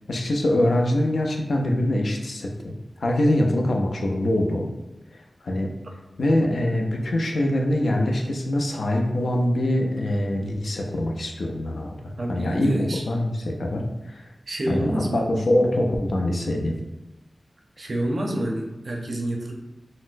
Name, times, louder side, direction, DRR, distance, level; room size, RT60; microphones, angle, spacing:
voice 1, 0.1-2.7 3.0-4.7 5.4-5.7 6.2-11.9 12.3-12.7 13.1-13.8 14.1-14.2 14.7-16.7, left 1 dB, 80° left, 1 dB, 0.4 m, -23 dB
voice 2, 12.2-13.0 14.5-15.5 17.8-19.5, right 1 dB, 55° right, 1 dB, 0.5 m, -28 dB
4.0 x 2.0 x 2.5 m, 1.0 s
wide cardioid pair, 70°, 0 cm